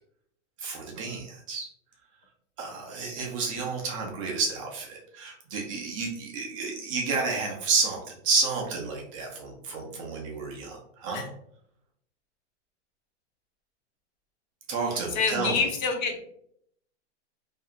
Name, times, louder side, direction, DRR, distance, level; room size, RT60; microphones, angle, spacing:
voice 1, 0.6-1.7 2.6-11.2 14.7-15.6, right 4 dB, 30° right, 0 dB, 0.4 m, -30 dB
voice 2, 15.2-16.2, left 5 dB, 40° left, 4 dB, 0.4 m, -26 dB
2.5 x 2.3 x 2.7 m, 0.70 s
supercardioid pair, 150°, 35 cm